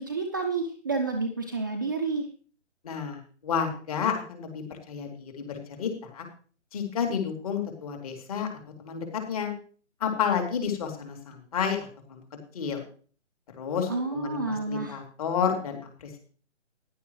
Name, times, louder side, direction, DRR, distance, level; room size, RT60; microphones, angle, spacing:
voice 1, 0.0-2.3 13.9-15.0, right 3 dB, 15° right, 3 dB, 0.6 m, -30 dB
voice 2, 2.8-6.2 6.7-8.5 8.8-9.5 10.0-12.2 12.5-12.8 13.6-16.2, left 7 dB, 30° left, 3 dB, 2.9 m, -31 dB
15.5 x 10.5 x 3.1 m, 0.42 s
figure-of-eight pair, 145°, 37 cm